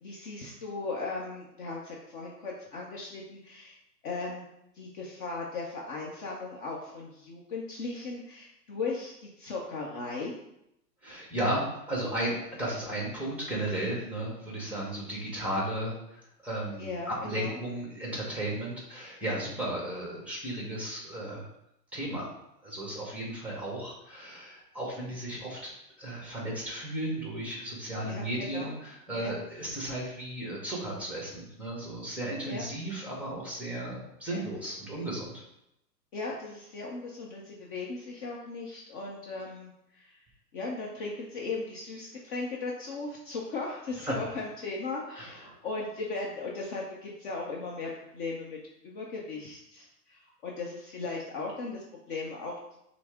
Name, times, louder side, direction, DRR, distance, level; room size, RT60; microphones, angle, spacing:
voice 1, 0.0-3.8 4.0-4.4 4.7-10.4 16.8-17.6 28.0-28.7 29.1-29.3 32.4-32.6 34.3-34.4 36.1-40.2 40.5-48.6 48.8-52.5, left 3 dB, 30° left, -2 dB, 0.6 m, -37 dB
voice 2, 11.0-21.5 21.9-22.3 22.6-25.7 26.0-35.3 44.1-44.2 45.2-45.6, right 1 dB, 5° right, -3 dB, 0.9 m, -34 dB
5.9 x 2.0 x 3.5 m, 0.80 s
hypercardioid pair, 125°, 49 cm